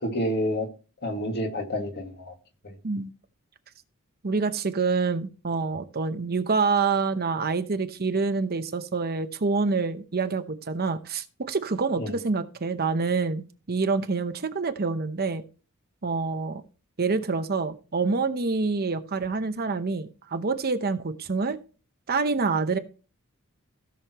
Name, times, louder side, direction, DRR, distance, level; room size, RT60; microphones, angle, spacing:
voice 1, 0.0-0.7 1.0-2.3 2.6-2.7 12.0-12.1, equal, 50° left, 2.1 m, -29 dB
voice 2, 4.2-15.4 16.0-16.6 17.0-21.6 22.1-22.8, right 4 dB, 45° right, 0.9 m, -27 dB
16.5 x 6.4 x 3.0 m
head